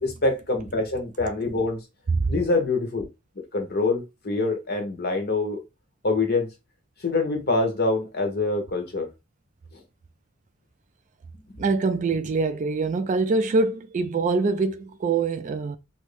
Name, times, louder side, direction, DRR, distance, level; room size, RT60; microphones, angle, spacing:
voice 1, 0.0-1.8 2.3-3.1 3.5-5.6 6.0-6.5 7.0-9.1 9.7-9.8, left 3 dB, 50° left, 1.1 m, -25 dB
voice 2, 11.6-15.8, right 3 dB, 35° right, 0.3 m, -24 dB
3.0 x 2.7 x 3.3 m
head